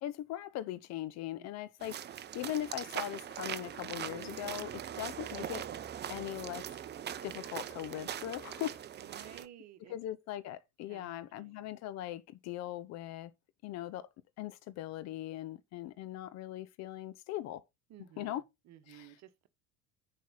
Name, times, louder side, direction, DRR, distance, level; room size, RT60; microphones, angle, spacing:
voice 1, 0.0-5.7 6.1-6.7 7.2-8.8 9.2-9.3 9.9-13.3 13.6-14.1 14.4-17.6 18.2-18.4 18.9-19.1, left 13 dB, 40° left, 0.7 m, -40 dB
sound 1, 1.8-9.5, right 10 dB, 25° right, 0.7 m, -41 dB
voice 2, 9.0-9.9 10.9-11.7 17.9-19.5, right 11 dB, 40° right, 1.3 m, -55 dB
10.0 x 4.2 x 5.4 m
figure-of-eight pair, 65°, 41 cm